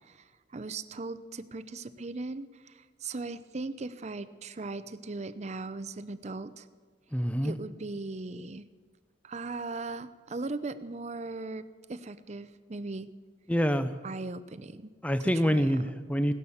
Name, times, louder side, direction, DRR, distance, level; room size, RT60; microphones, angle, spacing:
voice 1, 0.5-6.7 7.4-8.7 9.2-11.6 11.9-13.1 14.0-14.9 15.2-15.7, right 3 dB, 40° right, 13 dB, 0.6 m, -38 dB
voice 2, 7.1-7.6 13.5-13.9 15.0-16.3, equal, 10° left, 10 dB, 0.7 m, -26 dB
17.0 x 10.5 x 7.2 m, 1.5 s
head